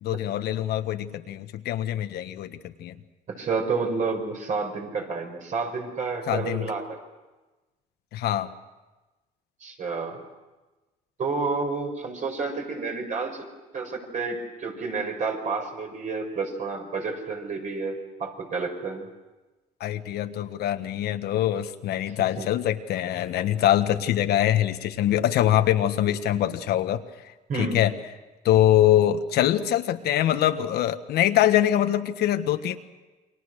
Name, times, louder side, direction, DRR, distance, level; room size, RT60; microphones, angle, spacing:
voice 1, 0.0-3.0 6.3-6.7 8.1-8.5 19.8-27.0 27.2-27.9 28.4-32.8, left 12 dB, 70° left, 8 dB, 1.4 m, -23 dB
voice 2, 3.3-6.8 9.6-10.2 11.2-13.5 13.7-19.1 22.4-22.5 27.5-27.8, right 4 dB, 45° right, 3 dB, 5.9 m, -30 dB
28.5 x 23.0 x 6.6 m, 1.1 s
cardioid pair, 110°, 17 cm